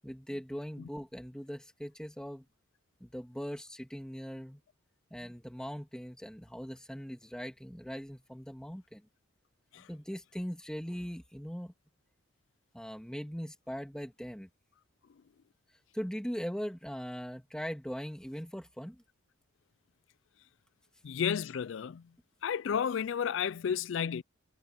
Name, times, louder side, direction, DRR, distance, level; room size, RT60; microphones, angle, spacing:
voice 1, 0.0-2.4 3.0-4.6 5.1-9.1 9.9-11.7 12.7-14.5 15.9-19.0, equal, 5° left, 2.5 m, -40 dB
voice 2, 21.0-22.0 22.4-24.2, left 7 dB, 70° left, 0.4 m, -32 dB
head